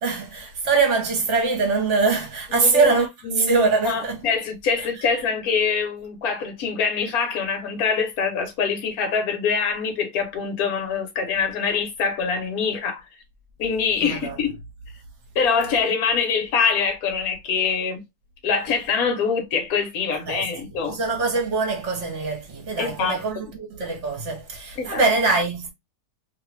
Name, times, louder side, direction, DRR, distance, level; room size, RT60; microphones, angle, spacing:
voice 1, 0.0-3.1 3.4-4.2 14.0-14.4 20.2-20.5 20.9-25.7, right 4 dB, 50° right, 1.2 m, -23 dB
voice 2, 2.5-2.9 3.2-13.0 13.6-14.5 15.3-18.0 18.4-21.0 22.8-23.2 24.8-25.0, left 5 dB, 60° left, 1.4 m, -24 dB
3.0 x 2.4 x 3.1 m
omnidirectional pair, 1.8 m